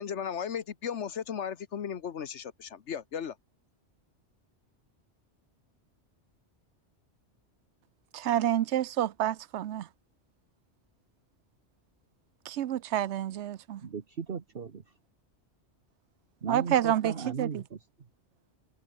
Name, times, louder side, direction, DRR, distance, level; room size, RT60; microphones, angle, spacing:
voice 1, 0.0-3.4, left 8 dB, 75° left, 1.4 m, -36 dB
voice 2, 8.1-9.9 12.5-13.8 16.5-17.6, right 11 dB, 80° right, 0.9 m, -28 dB
voice 3, 13.8-14.8 16.4-17.8, right 6 dB, 55° right, 1.4 m, -37 dB
omnidirectional pair, 1.2 m